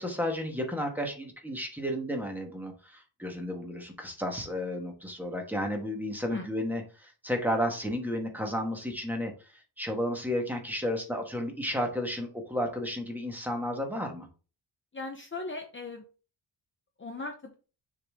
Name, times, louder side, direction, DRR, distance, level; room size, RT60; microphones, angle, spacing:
voice 1, 0.0-14.3, equal, 5° right, 2 dB, 1.4 m, -32 dB
voice 2, 14.9-16.0 17.0-17.5, left 3 dB, 25° left, 3 dB, 0.7 m, -38 dB
6.7 x 4.1 x 3.5 m, 0.35 s
wide cardioid pair, 155°, 44 cm